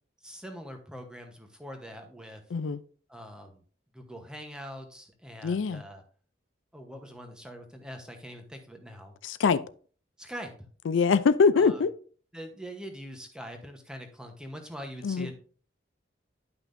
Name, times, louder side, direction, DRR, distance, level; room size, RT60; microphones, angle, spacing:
voice 1, 0.2-2.4 3.1-3.6 3.9-6.0 6.7-9.1 10.2-10.5 11.5-11.8 12.3-15.3, equal, 5° right, 1.0 m, -43 dB
voice 2, 2.5-2.8 5.4-5.8 9.2-9.6 10.9-11.9 15.0-15.3, left 5 dB, 80° left, 0.4 m, -23 dB
10.5 x 5.8 x 2.6 m
head